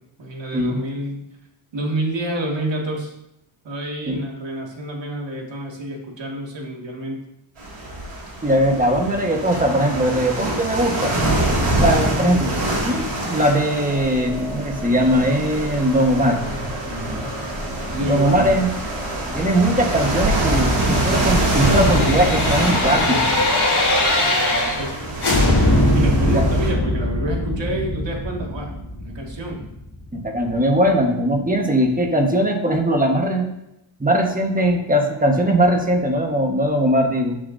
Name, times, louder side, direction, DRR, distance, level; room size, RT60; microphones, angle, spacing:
voice 1, 0.2-1.2 1.7-3.1 3.6-7.2 16.8-17.3 17.9-18.6 24.2-25.0 25.9-28.7 29.0-29.7, right 1 dB, 60° right, 0 dB, 2.2 m, -28 dB
sound 1, 7.6-26.7, right 1 dB, 80° right, 3.6 m, -25 dB
voice 2, 8.4-11.1 11.8-16.4 18.1-18.7 19.3-23.4 26.2-26.4 30.1-33.5 34.0-37.4, right 1 dB, 15° right, 2 dB, 1.4 m, -20 dB
sound 2, 13.9-20.1, left 1 dB, 10° left, 1.7 m, -35 dB
sound 3, 20.2-24.9 25.2-30.1 30.4-30.5, left 1 dB, 50° left, 3.2 m, -22 dB
13.0 x 7.3 x 2.7 m, 0.84 s
wide cardioid pair, 115°, 50 cm